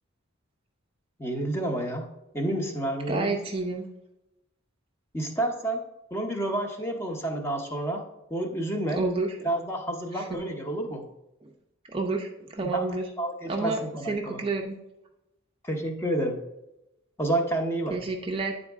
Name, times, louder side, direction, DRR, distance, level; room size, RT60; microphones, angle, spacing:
voice 1, 1.2-2.1 2.3-3.3 5.1-5.8 6.1-8.0 8.3-9.0 9.4-11.0 12.6-14.4 15.6-16.4 17.2-18.0, right 1 dB, 10° left, 2 dB, 0.8 m, -29 dB
voice 2, 3.1-3.9 9.0-9.4 10.1-10.4 11.9-13.1 13.5-14.8 17.9-18.6, right 3 dB, 25° right, 1 dB, 0.5 m, -29 dB
9.4 x 4.0 x 3.5 m, 0.90 s
head